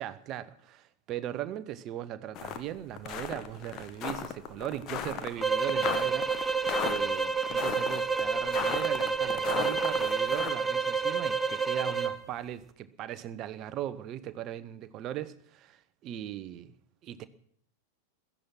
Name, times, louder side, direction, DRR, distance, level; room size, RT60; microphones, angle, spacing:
voice 1, 0.0-6.3 6.8-16.7 17.0-17.3, right 12 dB, 35° right, 1.0 m, -38 dB
sound 1, 2.3-2.6 3.0-10.5, left 9 dB, 35° left, 1.6 m, -36 dB
sound 2, 5.4-12.2, right 5 dB, 5° right, 1.2 m, -29 dB
16.5 x 13.5 x 5.9 m
figure-of-eight pair, 90°, 0 cm